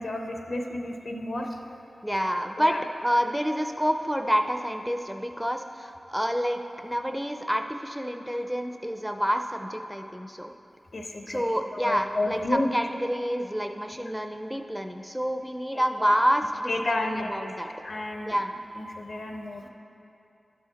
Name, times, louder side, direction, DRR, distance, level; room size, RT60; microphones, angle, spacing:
voice 1, 0.0-1.6 2.6-2.8 10.9-11.4 11.7-12.7 15.7-16.1 16.7-17.5 17.8-18.4 18.8-19.7, left 2 dB, 70° left, 3 dB, 0.8 m, -31 dB
voice 2, 2.0-2.7 3.0-10.5 11.3-17.7 18.2-18.5, equal, 5° right, 5 dB, 0.4 m, -28 dB
11.5 x 4.9 x 4.0 m, 2.8 s
wide cardioid pair, 60°, 0 cm